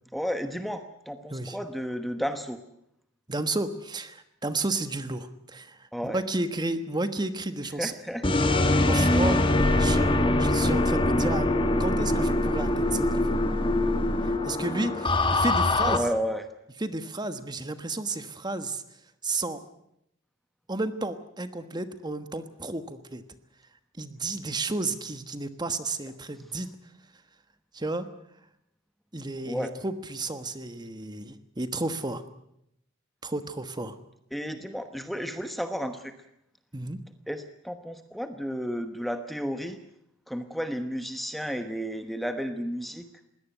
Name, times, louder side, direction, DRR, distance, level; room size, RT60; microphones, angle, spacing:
voice 1, 0.1-2.6 5.9-6.2 7.8-8.2 8.7-8.8 15.8-16.4 29.4-29.7 34.3-36.1 37.3-39.8 40.3-43.1, equal, ahead, 8 dB, 1.1 m, -32 dB
voice 2, 3.3-7.9 8.8-9.4 9.8-11.5 11.8-13.4 14.2-16.1 16.8-18.8 19.2-19.6 20.7-23.2 24.0-26.7 27.7-28.1 29.1-32.2 33.2-34.0 36.7-37.0, right 2 dB, 20° right, 10 dB, 1.3 m, -32 dB
sound 1, 8.2-16.0, left 2 dB, 25° left, 1.6 m, -23 dB
21.5 x 17.5 x 9.2 m, 0.78 s
head